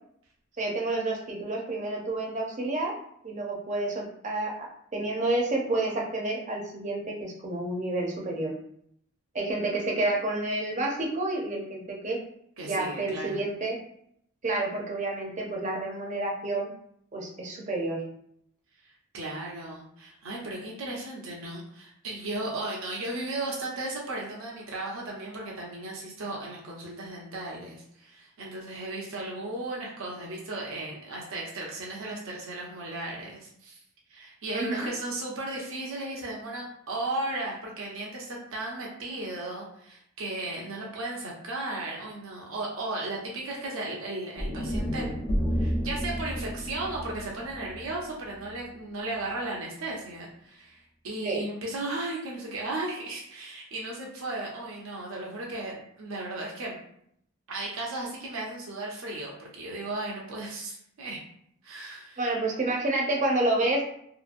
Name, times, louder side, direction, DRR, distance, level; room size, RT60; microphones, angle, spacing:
voice 1, 0.6-2.9 3.2-8.5 9.3-12.2 12.6-13.8 14.4-16.7 17.1-18.0 34.5-34.9 51.2-51.4 62.2-63.8, right 2 dB, 35° right, -1 dB, 0.6 m, -29 dB
voice 2, 12.6-13.4 18.8-33.8 34.1-45.2 45.6-56.8 57.5-61.2 61.6-62.2, right 2 dB, 80° right, -2 dB, 0.6 m, -35 dB
sound 1, 44.4-48.6, equal, 50° left, 0.8 m, -31 dB
2.8 x 2.5 x 2.5 m, 0.70 s
head